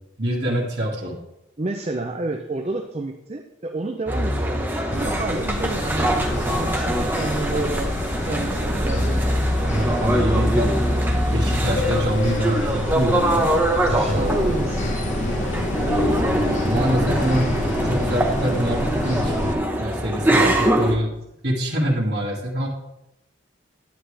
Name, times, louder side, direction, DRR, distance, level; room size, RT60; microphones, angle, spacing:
voice 1, 0.2-1.2 7.5-7.7 8.7-9.1 9.7-10.7 11.3-13.5 13.9-14.5 15.9-17.5 17.8-19.4 19.8-21.1 21.4-22.7, equal, 55° right, -5 dB, 2.1 m, -25 dB
voice 2, 1.6-6.1 6.6-9.4 10.2-10.5 13.9-15.0, right 2 dB, 30° right, 4 dB, 0.5 m, -30 dB
sound 1, 4.1-21.0, right 1 dB, 10° right, 1.0 m, -23 dB
sound 2, 4.9-19.5, left 1 dB, 40° left, 1.0 m, -28 dB
sound 3, 11.7-18.1, left 3 dB, 85° left, 1.5 m, -32 dB
10.5 x 9.5 x 3.4 m, 0.84 s
head